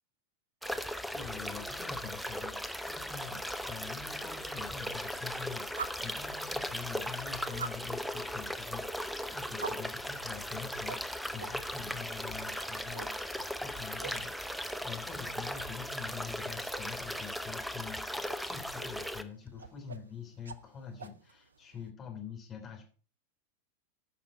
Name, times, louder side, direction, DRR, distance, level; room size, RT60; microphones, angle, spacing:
sound 1, 0.6-19.2, equal, ahead, 0.7 m, -38 dB
voice 1, 1.1-14.3 14.8-22.8, left 7 dB, 25° left, 1 dB, 3.3 m, -45 dB
sound 2, 13.2-21.9, right 4 dB, 70° right, 0.6 m, -49 dB
13.5 x 5.8 x 4.3 m, 0.40 s
figure-of-eight pair, 90°, 0 cm